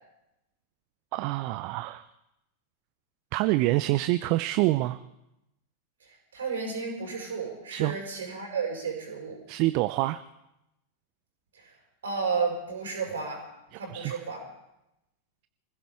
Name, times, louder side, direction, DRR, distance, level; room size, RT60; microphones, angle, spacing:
voice 1, 1.1-2.0 3.3-5.0 7.7-8.0 9.5-10.2 13.7-14.2, right 18 dB, 45° right, 13 dB, 0.5 m, -26 dB
voice 2, 6.0-9.4 11.5-11.7 12.0-13.5 13.8-14.4, right 5 dB, 65° right, 1 dB, 5.1 m, -32 dB
25.5 x 16.0 x 3.6 m, 0.88 s
figure-of-eight pair, 90°, 0 cm